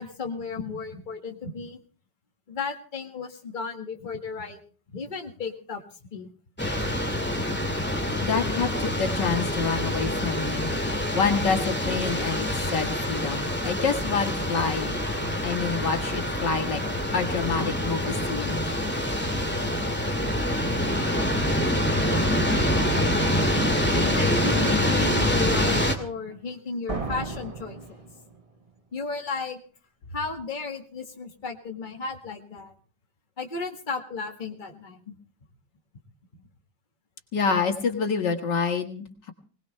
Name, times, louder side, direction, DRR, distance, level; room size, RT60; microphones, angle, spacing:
voice 1, 0.0-1.8 2.5-4.6 4.9-5.8 6.1-6.3 14.3-14.4 23.9-28.0 28.9-29.6 30.1-32.7 33.4-35.2, left 4 dB, 30° left, 3 dB, 1.9 m, -34 dB
sound 1, 6.6-25.9, equal, 5° left, 2.1 m, -26 dB
voice 2, 8.2-10.7 11.1-15.0 15.4-16.8 17.1-18.6 37.3-39.3, left 5 dB, 85° left, 5 dB, 2.5 m, -27 dB
sound 2, 26.9-28.7, right 3 dB, 25° right, 1.1 m, -35 dB
22.0 x 19.0 x 3.3 m, 0.39 s
omnidirectional pair, 1.8 m